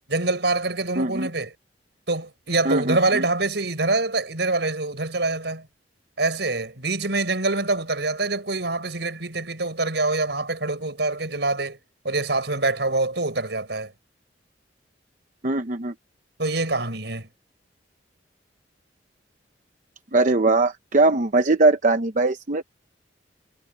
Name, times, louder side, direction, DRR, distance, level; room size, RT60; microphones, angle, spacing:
voice 1, 0.1-1.5 2.1-5.6 6.2-11.8 12.0-13.9 16.4-17.3, right 2 dB, 70° right, 5.4 m, -25 dB
voice 2, 1.0-1.3 2.6-3.2 15.4-15.9 20.1-22.6, right 2 dB, 45° right, 0.8 m, -21 dB
head